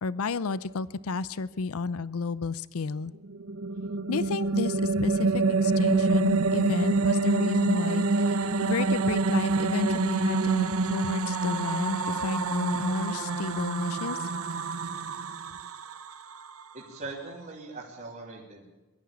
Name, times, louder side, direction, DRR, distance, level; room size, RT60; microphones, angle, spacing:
voice 1, 0.0-3.1 4.1-14.3, left 4 dB, 80° left, 17 dB, 0.6 m, -32 dB
sound 1, 3.2-16.6, right 3 dB, 80° right, 1.1 m, -27 dB
voice 2, 16.7-18.7, right 3 dB, 40° right, -5 dB, 3.3 m, -41 dB
22.5 x 13.5 x 8.6 m, 1.1 s
head